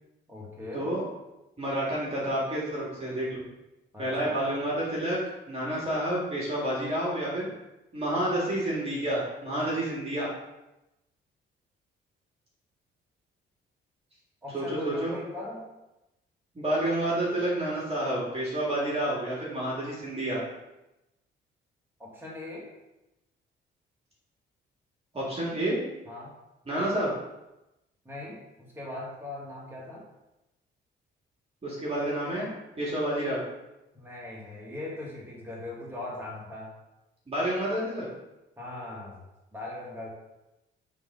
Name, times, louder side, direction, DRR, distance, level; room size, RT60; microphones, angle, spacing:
voice 1, 0.3-0.9 3.9-4.4 14.4-15.6 22.0-22.7 26.1-26.3 28.0-30.0 33.9-36.7 38.6-39.2 39.5-40.1, left 2 dB, 10° right, -5 dB, 2.2 m, -39 dB
voice 2, 1.6-3.4 4.0-5.2 5.5-7.5 7.9-10.3 14.5-15.1 16.5-20.4 25.1-25.8 26.7-27.1 31.6-32.5 32.8-33.4 37.3-38.1, right 1 dB, 30° right, -6 dB, 2.1 m, -29 dB
7.7 x 3.5 x 3.8 m, 0.96 s
cardioid pair, 90°, 20 cm